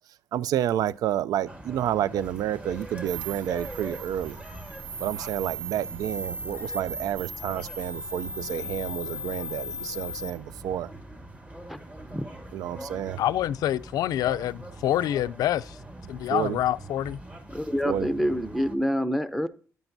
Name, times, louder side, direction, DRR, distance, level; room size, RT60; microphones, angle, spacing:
voice 1, 0.3-4.4 5.0-10.9 12.5-13.2 16.3-16.6 17.8-18.1, right 11 dB, 80° right, 0.3 m, -30 dB
sound 1, 1.5-18.8, right 1 dB, 20° right, 1.2 m, -43 dB
sound 2, 3.1-10.3, right 1 dB, 35° right, 1.9 m, -37 dB
voice 2, 11.7-12.4 17.5-19.5, equal, 5° right, 0.6 m, -27 dB
voice 3, 13.2-15.8 16.1-17.2, left 12 dB, 80° left, 0.4 m, -26 dB
10.5 x 7.9 x 2.6 m
cardioid pair, 85°, 6 cm